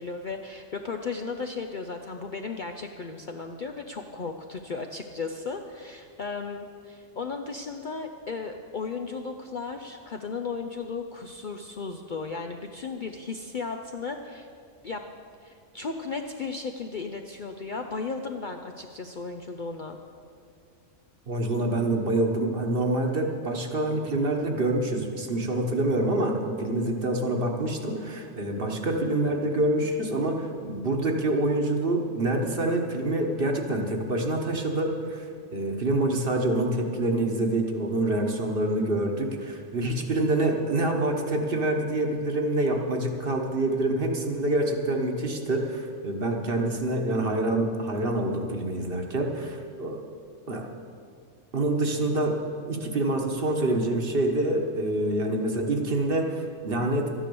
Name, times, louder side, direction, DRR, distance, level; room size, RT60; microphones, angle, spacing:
voice 1, 0.0-14.5 14.8-15.0 15.4-20.0, left 4 dB, 50° left, 4 dB, 0.6 m, -35 dB
voice 2, 21.3-35.3 35.5-50.0 50.5-50.7 51.5-52.4 52.7-57.1, right 1 dB, 45° right, 2 dB, 1.4 m, -26 dB
13.0 x 10.0 x 6.9 m, 2.4 s
omnidirectional pair, 1.4 m